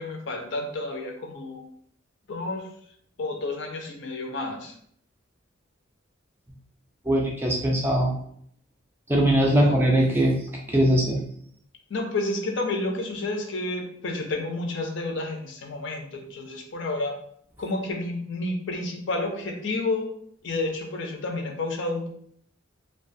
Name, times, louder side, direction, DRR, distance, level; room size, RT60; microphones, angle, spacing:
voice 1, 0.0-1.6 2.3-2.7 3.2-4.7 9.5-9.8 11.9-17.1 17.6-20.1 20.4-22.1, left 2 dB, 60° left, 2 dB, 0.5 m, -30 dB
voice 2, 7.1-8.1 9.1-10.3 10.7-11.2, right 1 dB, 10° right, -1 dB, 0.3 m, -21 dB
2.4 x 2.2 x 2.6 m, 0.66 s
head